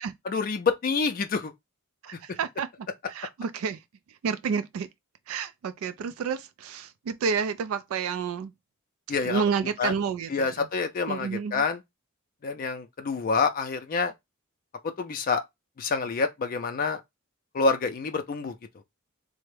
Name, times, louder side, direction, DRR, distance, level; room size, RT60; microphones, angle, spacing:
voice 1, 0.2-1.5 9.1-9.4 9.8-9.9 10.3-11.8 12.4-14.1 15.0-15.4 15.8-17.0 17.5-18.5, left 4 dB, 40° left, 0.4 m, -27 dB
voice 2, 2.0-2.7 3.1-3.8 4.2-4.9 5.3-8.5 9.2-10.7 11.1-11.6, right 6 dB, 90° right, 0.3 m, -30 dB
3.3 x 2.0 x 3.2 m
head